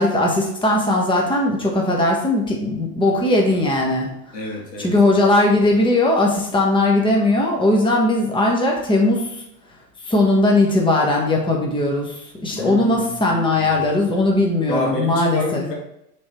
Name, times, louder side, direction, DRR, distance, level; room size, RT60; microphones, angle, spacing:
voice 1, 0.0-4.1 4.8-9.4 10.0-15.6, left 2 dB, 10° left, -1 dB, 1.4 m, -19 dB
voice 2, 4.3-4.9 12.5-13.7 14.7-15.7, left 2 dB, 80° left, -1 dB, 2.0 m, -28 dB
5.9 x 4.0 x 4.4 m, 0.80 s
hypercardioid pair, 90°, 48 cm